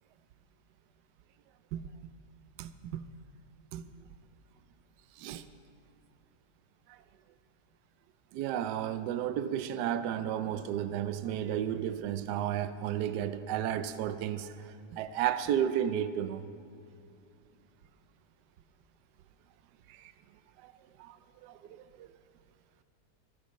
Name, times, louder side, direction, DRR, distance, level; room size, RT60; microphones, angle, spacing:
voice 1, 2.6-3.0 3.7-3.8 5.2-5.5 6.9-7.0 8.3-16.4 19.9-20.1 20.6-20.7 21.0-22.1, right 10 dB, 75° right, 1.1 m, -33 dB
23.0 x 12.0 x 3.1 m
omnidirectional pair, 1.9 m